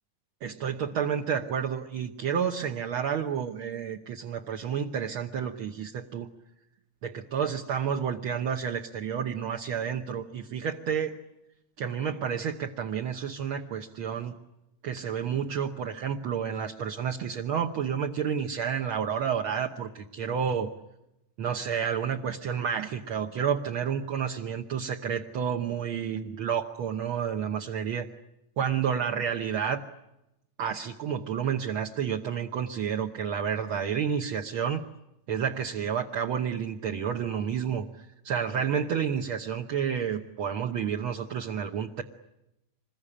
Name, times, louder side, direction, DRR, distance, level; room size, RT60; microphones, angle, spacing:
voice 1, 0.4-6.3 7.0-11.2 11.8-14.4 14.8-20.7 21.4-28.1 28.6-29.8 30.6-34.8 35.3-42.0, right 7 dB, 60° right, 3 dB, 1.6 m, -30 dB
26.0 x 22.0 x 10.0 m, 0.91 s
omnidirectional pair, 3.4 m